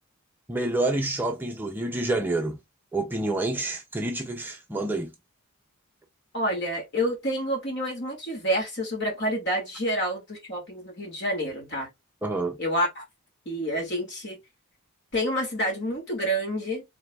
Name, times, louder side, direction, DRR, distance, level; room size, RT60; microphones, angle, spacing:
voice 1, 0.5-2.6 2.9-5.1 12.2-12.6, right 2 dB, 10° right, 0.5 m, -28 dB
voice 2, 6.3-11.9 12.6-13.0 13.5-14.4 15.1-16.8, equal, 50° left, 2.2 m, -28 dB
4.9 x 3.4 x 2.3 m
head